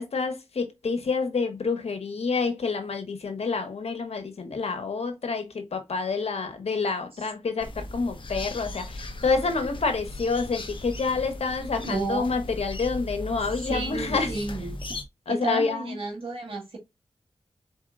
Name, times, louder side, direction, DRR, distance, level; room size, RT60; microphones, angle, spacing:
voice 1, 0.0-14.3 15.3-16.0, left 4 dB, 80° left, 1.2 m, -28 dB
sound 1, 7.6-15.0, left 1 dB, 55° left, 1.0 m, -37 dB
voice 2, 11.8-12.3 13.7-14.7 15.3-16.8, right 3 dB, 65° right, 2.5 m, -32 dB
4.5 x 4.4 x 2.5 m
wide cardioid pair, 65°, 10 cm